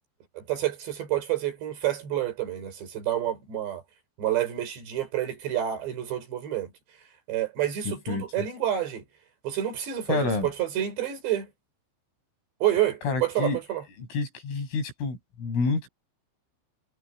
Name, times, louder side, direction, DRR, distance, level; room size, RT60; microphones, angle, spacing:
voice 1, 0.4-3.8 4.2-6.7 7.3-9.0 9.4-11.5 12.6-13.8, right 12 dB, 60° right, 6.7 m, -28 dB
voice 2, 7.9-8.2 10.1-10.5 13.0-13.6 14.0-15.9, left 3 dB, 80° left, 9.2 m, -28 dB
omnidirectional pair, 5.8 m